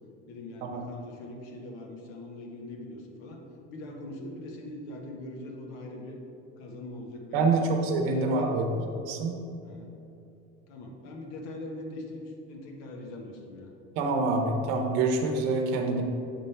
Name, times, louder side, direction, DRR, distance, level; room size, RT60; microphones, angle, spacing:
voice 1, 0.3-3.4 3.7-6.2 6.6-7.7 8.0-8.5 9.6-9.9 10.7-13.7, left 1 dB, 90° left, 1 dB, 1.1 m, -42 dB
voice 2, 7.3-8.6 9.1-9.4 14.0-16.0, right 3 dB, 80° right, 3 dB, 0.8 m, -26 dB
7.3 x 3.4 x 4.3 m, 2.8 s
cardioid pair, 170°, 29 cm